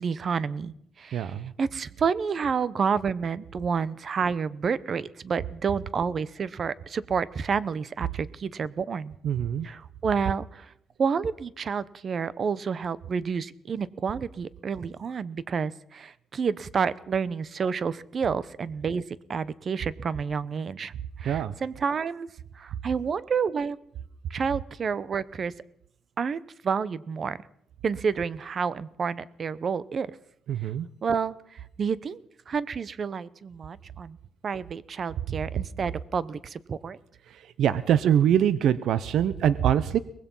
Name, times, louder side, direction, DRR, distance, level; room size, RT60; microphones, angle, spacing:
voice 1, 0.0-9.1 9.6-10.7 11.0-19.0 19.3-20.9 21.2-22.3 22.5-23.8 24.3-25.5 26.2-27.4 27.8-30.1 31.0-32.2 32.5-34.2 34.4-37.0, right 6 dB, 45° right, 19 dB, 0.9 m, -29 dB
voice 2, 1.1-1.5 9.2-9.7 21.2-21.5 30.5-30.9 37.6-40.0, right 9 dB, 75° right, 16 dB, 0.8 m, -23 dB
23.5 x 20.0 x 5.6 m, 0.69 s
cardioid pair, 125°, 0 cm